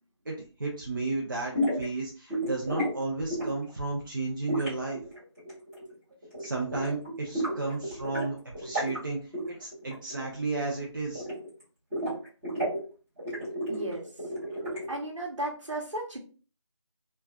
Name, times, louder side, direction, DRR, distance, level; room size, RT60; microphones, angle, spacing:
voice 1, 0.3-5.0 6.4-9.2 9.5-11.3, right 3 dB, 45° right, -2 dB, 0.6 m, -33 dB
sound 1, 1.5-1.9 2.3-2.9 3.3-3.7 4.5-5.9 6.2-6.5 6.7-8.3 8.5-9.0 9.3-10.2 10.5-11.6 11.9-12.8 13.2-15.0, equal, 5° right, 0.7 m, -32 dB
voice 2, 13.7-14.1 14.9-16.2, right 2 dB, 90° right, -2 dB, 1.0 m, -34 dB
3.1 x 2.3 x 2.3 m, 0.37 s
figure-of-eight pair, 170°, 15 cm